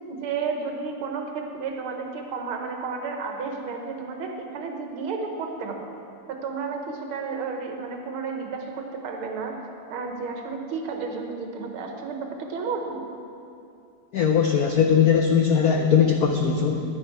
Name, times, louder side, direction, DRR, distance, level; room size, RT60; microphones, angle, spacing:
voice 1, 0.1-5.9 6.3-9.5 9.9-13.0, right 4 dB, 75° right, 3 dB, 1.9 m, -32 dB
voice 2, 14.1-16.8, left 7 dB, 85° left, 3 dB, 0.8 m, -20 dB
11.0 x 10.5 x 4.5 m, 2.6 s
omnidirectional pair, 2.4 m